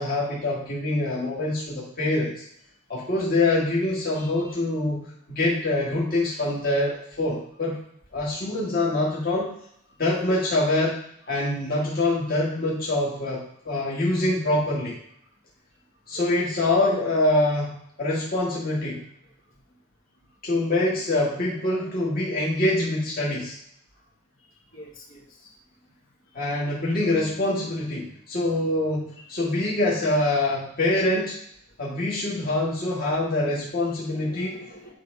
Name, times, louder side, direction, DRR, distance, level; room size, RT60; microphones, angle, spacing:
voice 1, 0.0-2.4 2.9-7.8 8.1-9.5 10.0-11.0 11.3-15.0 16.1-19.0 20.4-23.5 26.3-31.4 31.8-34.6, left 2 dB, 45° left, -6 dB, 1.7 m, -25 dB
voice 2, 4.1-4.6 8.3-8.4 16.1-16.2 24.7-25.5 26.5-26.6 29.3-29.4 33.8-34.9, left 1 dB, 70° left, -3 dB, 2.3 m, -45 dB
9.7 x 3.5 x 5.3 m, 0.71 s
head